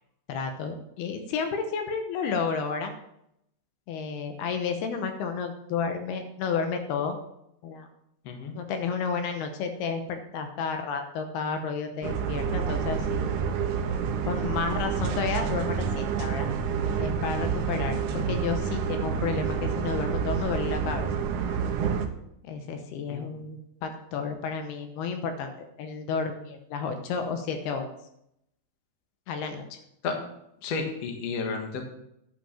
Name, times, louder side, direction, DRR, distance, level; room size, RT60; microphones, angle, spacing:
voice 1, 0.3-2.9 3.9-7.2 7.6-7.9 8.6-13.3 14.2-16.5 17.0-21.1 22.5-27.9 29.3-29.8, left 5 dB, 75° left, 6 dB, 2.8 m, -31 dB
voice 2, 8.3-8.6 23.1-23.3 30.0-30.1 30.6-31.8, left 4 dB, 50° left, 3 dB, 2.1 m, -32 dB
sound 1, 12.0-22.1, right 6 dB, 85° right, 1.7 m, -28 dB
11.5 x 5.9 x 7.1 m, 0.79 s
omnidirectional pair, 4.8 m